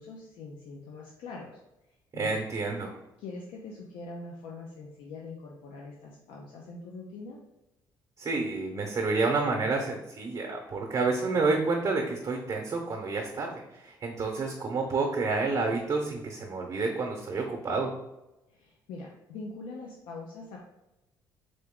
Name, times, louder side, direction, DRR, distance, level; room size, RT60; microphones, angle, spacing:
voice 1, 0.0-1.6 1.9-2.4 3.2-7.4 18.5-20.6, left 3 dB, 85° left, -1 dB, 0.6 m, -43 dB
voice 2, 2.1-2.9 8.2-17.9, right 3 dB, 40° right, 2 dB, 0.8 m, -29 dB
3.9 x 3.4 x 3.6 m, 0.95 s
cardioid pair, 100°, 8 cm